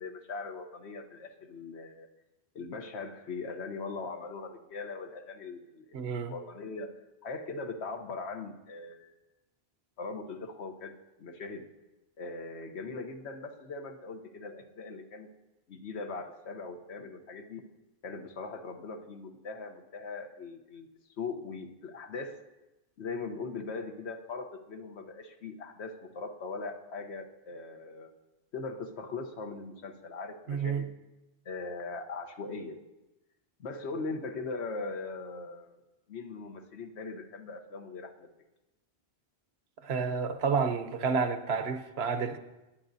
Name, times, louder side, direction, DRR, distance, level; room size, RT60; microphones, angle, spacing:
voice 1, 0.0-2.1 2.5-7.0 7.2-9.1 10.0-10.9 11.2-11.6 12.2-15.3 15.7-17.6 18.0-20.9 21.2-22.4 23.0-28.1 28.5-30.9 31.4-32.8 33.6-35.8 36.1-38.3, left 3 dB, 90° left, 1.2 m, -40 dB
voice 2, 5.9-6.3 30.5-30.9 39.8-42.4, right 5 dB, 75° right, 1.0 m, -30 dB
18.5 x 10.5 x 2.7 m
omnidirectional pair, 1.1 m